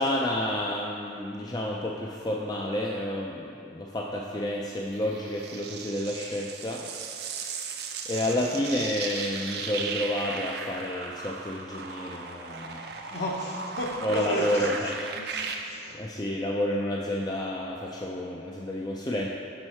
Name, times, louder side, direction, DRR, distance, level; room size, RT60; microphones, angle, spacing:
voice 1, 0.0-6.8 8.1-12.9 14.0-14.9 16.0-19.3, left 1 dB, 20° left, -2 dB, 0.3 m, -30 dB
sound 1, 4.9-15.5, right 5 dB, 55° right, 0.5 m, -37 dB
voice 2, 13.1-14.7 15.2-16.0, equal, 60° left, -1 dB, 0.9 m, -33 dB
6.2 x 5.4 x 4.4 m, 2.5 s
head